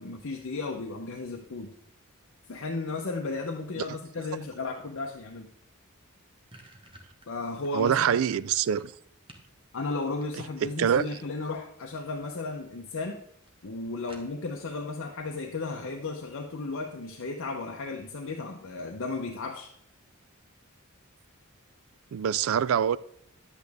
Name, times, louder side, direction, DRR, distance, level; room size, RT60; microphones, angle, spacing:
voice 1, 0.0-1.7 2.5-5.5 7.3-8.2 9.7-13.2 13.6-19.7, left 3 dB, 60° left, 0.8 m, -34 dB
sound 1, 6.5-9.5 9.9-10.8 11.9-12.3 12.6-12.7 13.1-13.2 13.5-13.6 14.1-14.6, right 1 dB, 25° right, 1.3 m, -53 dB
voice 2, 7.7-8.9 10.6-11.0 22.1-23.0, right 8 dB, 70° right, 0.3 m, -25 dB
10.5 x 8.3 x 3.5 m
head